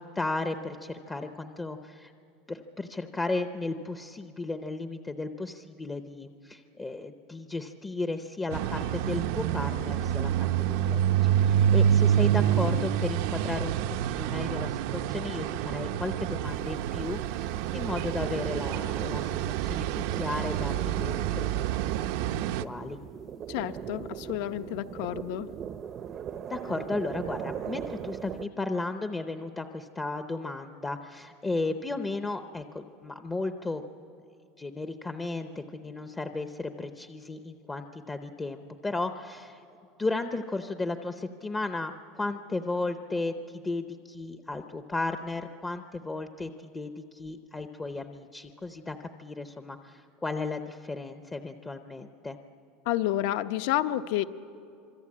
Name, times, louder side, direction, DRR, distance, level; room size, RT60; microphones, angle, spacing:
voice 1, 0.0-2.1 2.5-11.0 11.4-23.0 26.5-33.8 34.6-39.6 40.0-52.4, left 3 dB, 10° left, 7 dB, 0.6 m, -35 dB
sound 1, 8.5-22.6, right 10 dB, 65° right, 0.7 m, -27 dB
sound 2, 16.4-28.5, right 8 dB, 30° right, 0.6 m, -40 dB
voice 2, 23.5-25.5 52.9-54.2, left 13 dB, 65° left, 11 dB, 0.8 m, -30 dB
26.0 x 23.5 x 8.5 m, 2.6 s
cardioid pair, 165°, 0 cm